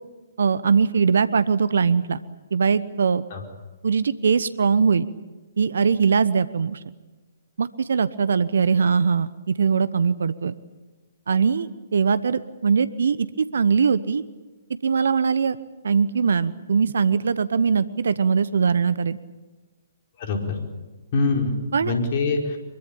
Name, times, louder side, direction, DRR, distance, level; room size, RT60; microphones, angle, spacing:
voice 1, 0.4-2.2 2.5-3.2 3.8-5.1 5.6-6.8 7.6-10.5 11.3-14.2 14.8-19.2 21.7-21.9, right 5 dB, 65° right, 16 dB, 1.0 m, -21 dB
voice 2, 20.2-20.6 21.1-22.6, left 3 dB, 45° left, 3 dB, 4.7 m, -24 dB
24.0 x 22.5 x 8.9 m, 1.2 s
figure-of-eight pair, 125°, 0 cm